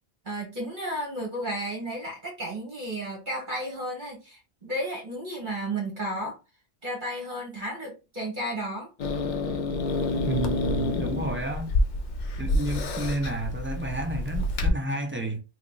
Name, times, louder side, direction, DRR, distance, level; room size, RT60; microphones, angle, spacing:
voice 1, 0.2-6.4 6.8-8.9, right 1 dB, 45° right, 1.4 m, -33 dB
Growling / Hiss, 9.0-14.7, left 2 dB, 50° left, 0.6 m, -28 dB
voice 2, 10.3-11.7 12.4-15.4, right 2 dB, 15° right, 0.4 m, -31 dB
2.9 x 2.4 x 3.8 m
omnidirectional pair, 1.2 m